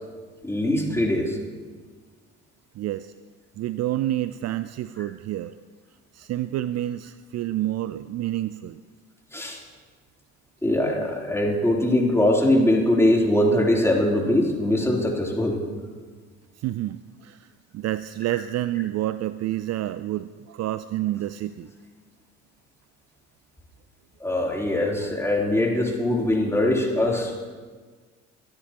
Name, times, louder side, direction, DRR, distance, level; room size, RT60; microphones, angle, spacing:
voice 1, 0.4-1.4 9.3-9.6 10.6-15.6 24.2-27.5, left 1 dB, 5° left, -2 dB, 3.4 m, -22 dB
voice 2, 2.8-3.1 3.6-5.5 6.1-8.8 16.6-17.5 17.7-21.7, right 14 dB, 45° right, 14 dB, 0.5 m, -29 dB
22.0 x 10.0 x 3.0 m, 1.4 s
hypercardioid pair, 55°, 36 cm